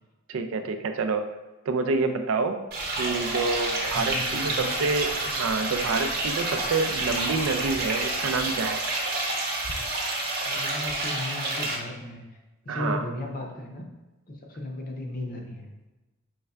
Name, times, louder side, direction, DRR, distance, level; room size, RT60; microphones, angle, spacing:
voice 1, 0.3-1.3 1.7-2.6 3.0-8.8 12.7-13.0, right 4 dB, 70° right, 7 dB, 0.4 m, -27 dB
sound 1, 2.7-9.1, equal, 75° left, 0.8 m, -47 dB
sound 2, 2.7-11.8, right 2 dB, 45° right, 0.8 m, -29 dB
sound 3, 3.8-10.7, right 2 dB, 5° right, 0.8 m, -42 dB
voice 2, 3.9-4.7 10.4-12.2 12.6-13.9 14.3-15.7, left 1 dB, 40° left, 1 dB, 0.6 m, -35 dB
5.4 x 3.2 x 2.3 m, 1.1 s
head